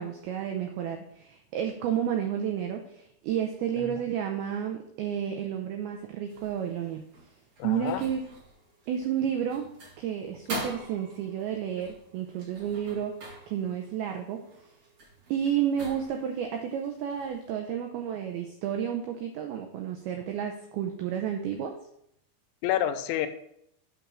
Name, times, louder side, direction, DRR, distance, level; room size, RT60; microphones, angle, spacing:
voice 1, 0.0-7.0 7.6-8.2 8.9-13.1 13.5-14.5 15.3-21.7, right 9 dB, 90° right, 3 dB, 2.2 m, -31 dB
sound 1, 6.2-17.5, right 1 dB, 45° right, 2.1 m, -44 dB
voice 2, 7.6-8.1 22.6-23.3, left 11 dB, 85° left, 9 dB, 2.9 m, -28 dB
8.6 x 3.7 x 6.1 m, 0.75 s
omnidirectional pair, 5.2 m